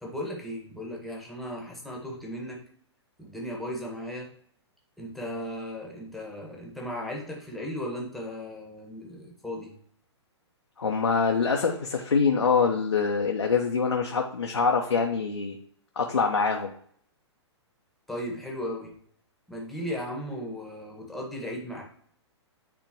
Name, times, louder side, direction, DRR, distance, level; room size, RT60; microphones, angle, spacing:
voice 1, 0.0-2.6 3.2-4.3 5.0-9.7 18.1-18.9 19.5-21.8, equal, ahead, -2 dB, 1.6 m, -36 dB
voice 2, 10.8-15.6 16.0-16.7, left 5 dB, 75° left, 1 dB, 0.9 m, -24 dB
9.1 x 3.7 x 3.0 m, 0.62 s
figure-of-eight pair, 115°, 15 cm